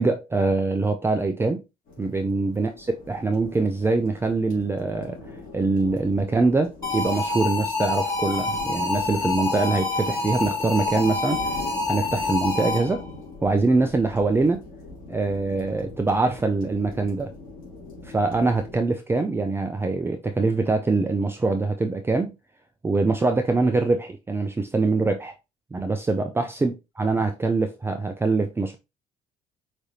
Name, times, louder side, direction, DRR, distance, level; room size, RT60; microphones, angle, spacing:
voice 1, 0.0-1.6 2.0-5.2 5.5-11.4 11.9-13.0 13.4-14.6 15.1-17.3 18.0-22.3 22.8-25.3 25.7-28.8, right 3 dB, 15° right, 0.4 m, -23 dB
sound 1, 1.9-18.7, left 3 dB, 55° left, 2.6 m, -42 dB
sound 2, 6.8-13.1, left 3 dB, 20° left, 2.0 m, -27 dB
4.9 x 3.2 x 2.7 m
cardioid pair, 110°, 17 cm